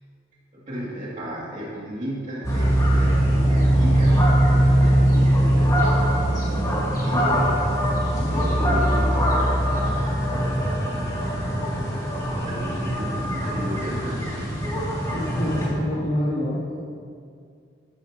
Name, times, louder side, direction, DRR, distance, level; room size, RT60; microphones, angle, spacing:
voice 1, 0.5-8.0 8.3-11.1 11.9-14.6, equal, 40° right, -7 dB, 2.6 m, -34 dB
sound 1, 2.4-15.7, equal, 20° left, 2.6 m, -21 dB
voice 2, 15.1-16.8, left 1 dB, 35° left, -12 dB, 2.7 m, -26 dB
13.5 x 13.5 x 3.0 m, 2.3 s
head